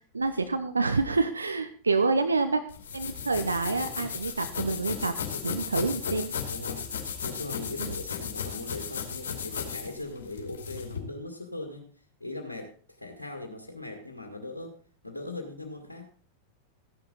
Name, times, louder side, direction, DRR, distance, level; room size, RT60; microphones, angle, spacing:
voice 1, 0.1-2.6 2.9-5.1 5.4-6.3 7.8-7.9, right 3 dB, 80° right, 10 dB, 0.8 m, -27 dB
sound 1, 2.7-11.0, left 7 dB, 65° left, 2.7 m, -35 dB
voice 2, 6.5-6.8 7.2-11.9 12.2-12.7 13.0-14.7 15.0-16.1, left 2 dB, 80° left, 2 dB, 2.0 m, -39 dB
14.5 x 11.0 x 4.0 m, 0.43 s
figure-of-eight pair, 90°, 0 cm